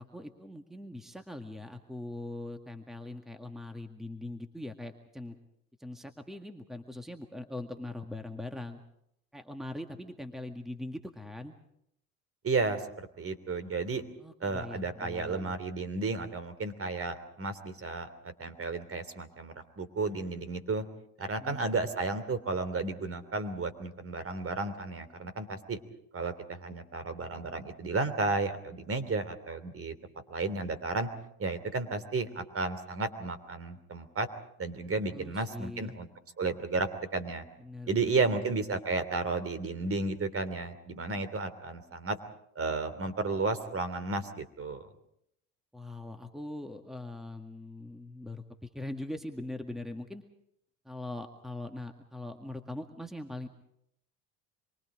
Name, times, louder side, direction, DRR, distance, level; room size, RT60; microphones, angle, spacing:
voice 1, 0.0-5.4 5.8-8.8 9.3-11.5 14.2-15.6 21.4-21.7 35.1-36.0 37.6-38.4 45.7-50.2 50.8-53.5, left 2 dB, ahead, 6 dB, 2.0 m, -41 dB
voice 2, 12.4-12.8 13.2-14.0 14.4-20.8 21.2-25.8 26.1-29.9 30.3-31.1 31.4-34.3 34.6-36.1 36.4-37.4 37.9-42.2 42.5-44.9, right 3 dB, 30° right, 12 dB, 3.1 m, -33 dB
27.0 x 24.0 x 5.1 m, 0.76 s
hypercardioid pair, 80°, 42 cm